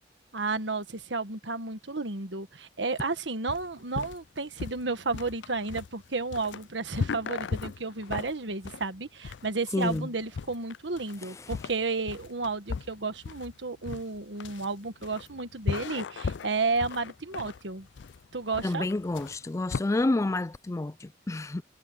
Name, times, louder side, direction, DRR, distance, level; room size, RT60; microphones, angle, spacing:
voice 1, 0.3-17.9 18.3-18.9, right 3 dB, 85° right, 1.4 m, -32 dB
sound 1, 3.5-19.8, left 5 dB, 85° left, 0.5 m, -37 dB
voice 2, 9.7-10.1 18.6-21.6, left 2 dB, 15° left, 0.3 m, -29 dB
head